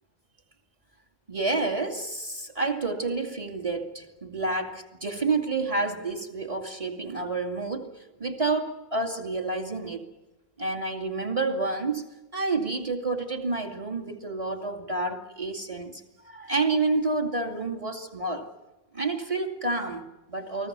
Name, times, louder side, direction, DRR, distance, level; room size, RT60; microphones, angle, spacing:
voice 1, 1.3-10.1 10.6-18.5 18.9-20.7, right 3 dB, 15° right, 2.4 m, -29 dB
29.0 x 20.5 x 6.8 m
omnidirectional pair, 2.0 m